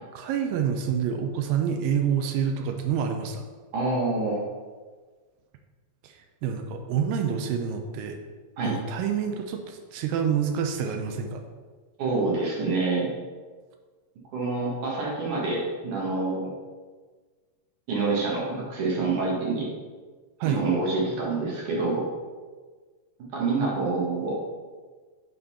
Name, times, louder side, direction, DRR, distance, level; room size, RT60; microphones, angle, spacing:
voice 1, 0.2-3.5 6.0-8.2 8.7-11.4 20.4-20.6, right 7 dB, 85° right, 5 dB, 2.4 m, -27 dB
voice 2, 3.7-4.4 8.6-8.7 12.0-13.1 14.3-16.5 17.9-19.7 20.4-22.0 23.3-24.4, right 3 dB, 65° right, -4 dB, 3.0 m, -26 dB
7.9 x 4.0 x 5.6 m, 1.4 s
omnidirectional pair, 4.0 m